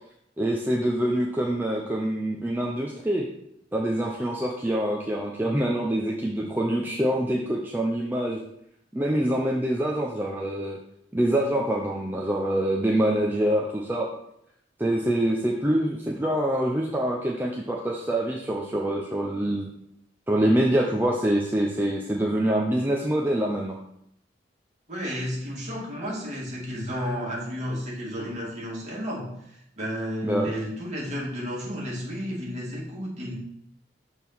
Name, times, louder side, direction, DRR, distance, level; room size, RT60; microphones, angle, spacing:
voice 1, 0.4-3.3 3.7-8.4 8.9-10.8 11.1-14.1 14.8-19.7 20.3-23.8 30.2-30.5, right 1 dB, 10° right, -1 dB, 0.5 m, -25 dB
voice 2, 24.9-33.4, equal, 40° right, -4 dB, 2.2 m, -32 dB
6.5 x 3.6 x 6.0 m, 0.76 s
head